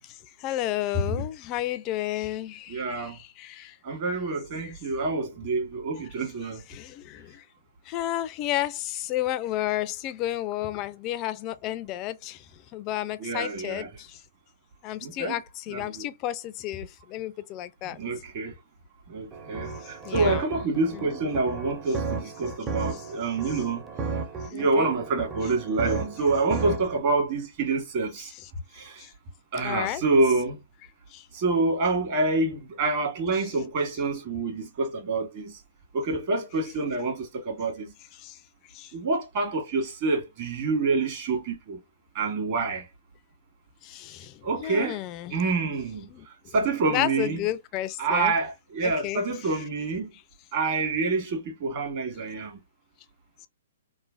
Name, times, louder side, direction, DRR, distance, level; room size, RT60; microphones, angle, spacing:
voice 1, 0.0-3.8 4.6-4.7 6.7-7.5 7.9-14.2 14.8-18.0 19.8-20.4 20.9-21.2 22.9-23.0 24.4-24.9 29.0-29.1 29.6-30.0 31.1-31.3 38.2-38.4 38.7-38.9 43.8-45.4 46.1-46.5 46.8-48.3 48.8-49.2, left 14 dB, 30° left, 0.4 m, -32 dB
voice 2, 0.9-1.2 2.7-3.2 3.8-6.6 13.2-13.9 15.0-15.4 15.7-16.1 17.8-18.5 19.1-23.9 24.4-28.3 28.7-29.1 29.5-30.6 31.3-35.6 35.9-37.9 38.9-41.8 42.1-42.9 44.4-45.0 45.3-47.5 48.0-50.1 50.5-52.6, right 3 dB, 45° right, 1.6 m, -27 dB
sound 1, 19.3-27.0, right 4 dB, 15° right, 0.6 m, -34 dB
3.2 x 2.1 x 2.4 m
hypercardioid pair, 135°, 0 cm